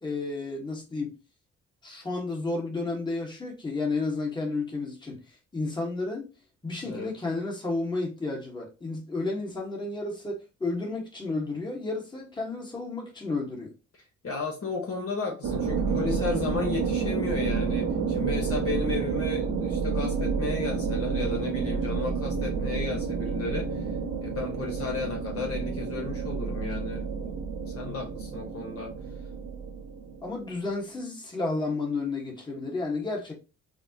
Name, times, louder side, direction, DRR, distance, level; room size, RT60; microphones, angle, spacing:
voice 1, 0.0-1.1 1.8-5.2 5.5-6.2 6.6-13.7 30.2-33.3, left 3 dB, 15° left, 1.3 m, -32 dB
voice 2, 14.2-23.9 24.2-27.4 27.7-28.9, left 4 dB, 50° left, 1.0 m, -33 dB
sound 1, 15.4-30.5, right 5 dB, 70° right, 0.8 m, -30 dB
4.1 x 2.1 x 2.7 m
cardioid pair, 90°, 30 cm